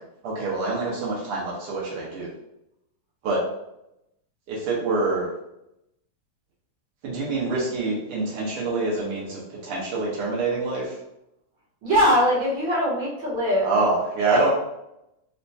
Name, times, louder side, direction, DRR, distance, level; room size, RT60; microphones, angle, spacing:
voice 1, 0.2-2.3 3.2-3.4 4.5-5.3 7.0-10.9 13.6-14.5, right 3 dB, 85° right, -5 dB, 1.9 m, -26 dB
voice 2, 11.8-13.7 14.2-14.4, equal, 65° right, -6 dB, 1.9 m, -22 dB
4.3 x 2.2 x 2.7 m, 0.84 s
omnidirectional pair, 2.4 m